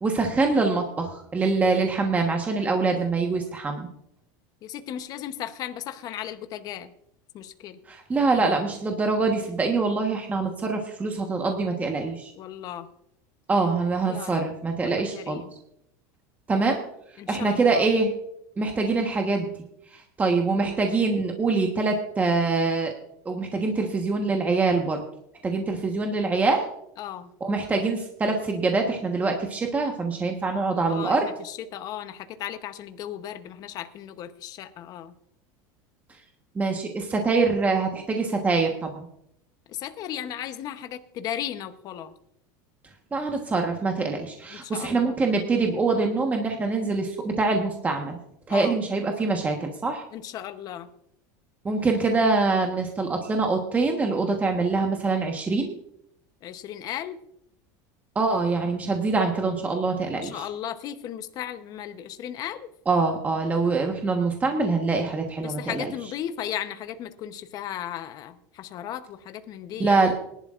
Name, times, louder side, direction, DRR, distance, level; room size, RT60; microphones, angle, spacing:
voice 1, 0.0-3.9 7.9-12.3 13.5-15.4 16.5-16.8 17.3-18.1 18.6-19.5 19.9-22.9 23.2-25.0 25.4-26.6 27.4-31.3 36.5-39.0 43.1-48.2 48.5-50.0 51.6-55.7 58.1-60.5 62.9-65.9 69.8-70.1, right 3 dB, 15° right, 3 dB, 1.3 m, -24 dB
voice 2, 4.6-6.9 7.3-7.8 12.4-12.9 14.1-14.4 14.8-15.5 17.2-17.9 20.5-20.6 27.0-27.3 30.9-35.1 39.7-42.1 44.5-45.1 48.5-48.8 50.1-50.9 56.4-57.2 60.1-62.7 65.4-70.1, left 10 dB, 40° left, 9 dB, 0.9 m, -36 dB
20.0 x 11.5 x 2.5 m, 0.74 s
supercardioid pair, 140°, 10 cm